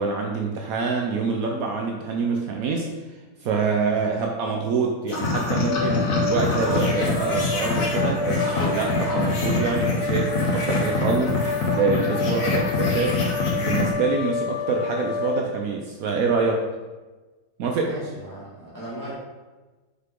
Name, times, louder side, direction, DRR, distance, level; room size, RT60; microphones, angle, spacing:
voice 1, 0.0-2.9 3.4-13.2 13.5-16.6 17.6-17.9, right 4 dB, 80° right, 1 dB, 0.7 m, -26 dB
sound 1, 5.1-13.9, left 3 dB, 50° left, 1.4 m, -25 dB
sound 2, 5.7-15.4, left 3 dB, 70° left, 1.0 m, -29 dB
voice 2, 17.8-19.1, right 1 dB, 10° left, -9 dB, 2.0 m, -37 dB
5.9 x 5.6 x 3.7 m, 1.2 s
omnidirectional pair, 2.2 m